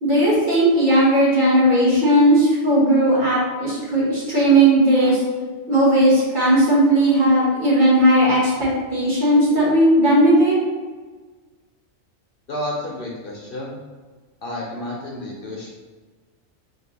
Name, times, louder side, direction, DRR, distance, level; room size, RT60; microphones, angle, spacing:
voice 1, 0.0-5.2 5.7-10.6, right 1 dB, 40° right, -6 dB, 1.3 m, -16 dB
voice 2, 12.5-13.8 14.4-15.7, left 1 dB, 55° left, -3 dB, 0.7 m, -31 dB
3.5 x 2.6 x 4.0 m, 1.4 s
omnidirectional pair, 1.4 m